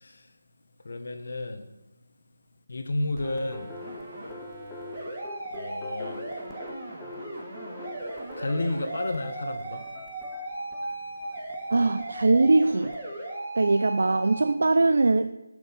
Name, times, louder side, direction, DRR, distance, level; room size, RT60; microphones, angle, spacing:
voice 1, 0.8-1.7 2.7-3.7 5.5-6.3 8.4-9.8, left 2 dB, 50° left, 6 dB, 1.2 m, -31 dB
sound 1, 3.1-14.5, right 2 dB, 15° right, 2.4 m, -37 dB
sound 2, 3.2-13.0, left 2 dB, 5° left, 0.6 m, -45 dB
voice 2, 11.7-12.9 13.6-15.3, right 3 dB, 55° right, 10 dB, 0.5 m, -21 dB
13.5 x 6.5 x 7.1 m, 1.0 s
figure-of-eight pair, 170°, 0 cm